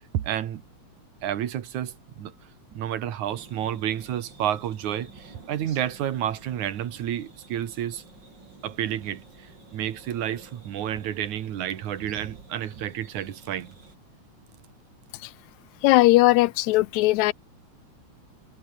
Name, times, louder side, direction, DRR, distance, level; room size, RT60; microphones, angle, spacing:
voice 1, 0.1-0.6 1.2-2.3 2.7-8.0 8.6-9.5 9.7-13.7, right 11 dB, 80° right, 3.0 m, -30 dB
sound 1, 3.2-13.9, right 3 dB, 35° right, 5.2 m, -51 dB
voice 2, 15.8-17.3, left 19 dB, 80° left, 1.9 m, -19 dB
omnidirectional pair, 3.3 m